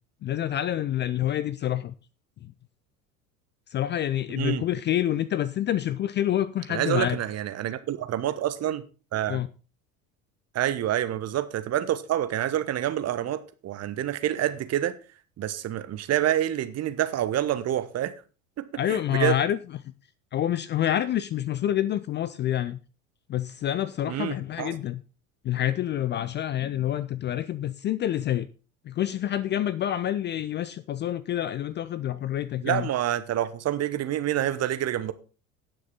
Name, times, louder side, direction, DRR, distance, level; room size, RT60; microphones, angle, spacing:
voice 1, 0.2-1.9 2.4-2.5 3.7-7.2 9.3-9.5 18.7-19.6 20.3-22.8 23.3-25.0 25.4-28.5 28.9-32.9, left 11 dB, 25° left, 0.5 m, -27 dB
voice 2, 6.7-8.9 9.1-9.4 10.5-15.0 15.4-18.1 18.6-19.4 24.1-24.8 32.6-35.1, right 12 dB, 35° right, 1.2 m, -27 dB
17.5 x 6.3 x 3.9 m
figure-of-eight pair, 65°, 43 cm